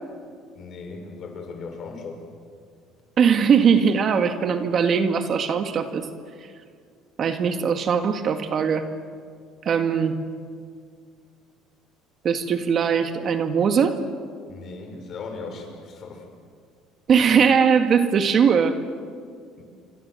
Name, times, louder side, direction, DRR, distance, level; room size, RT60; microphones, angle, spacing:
voice 1, 0.5-2.2 14.5-16.3 19.6-19.7, left 4 dB, 45° left, 3 dB, 6.4 m, -37 dB
voice 2, 3.2-6.1 7.2-8.9 9.6-10.2 12.2-14.0 17.1-18.8, right 6 dB, 40° right, 7 dB, 1.9 m, -20 dB
28.0 x 25.0 x 7.9 m, 2.1 s
cardioid pair, 125°, 0 cm